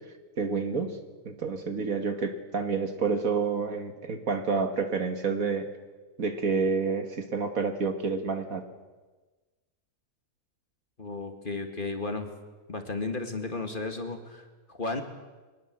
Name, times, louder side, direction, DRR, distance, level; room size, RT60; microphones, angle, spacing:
voice 1, 0.4-1.0 1.3-5.7 6.2-8.6, right 4 dB, 70° right, 7 dB, 2.2 m, -29 dB
voice 2, 11.0-12.3 12.7-15.0, left 3 dB, 35° left, 5 dB, 2.2 m, -34 dB
22.5 x 20.0 x 7.7 m, 1.3 s
omnidirectional pair, 1.5 m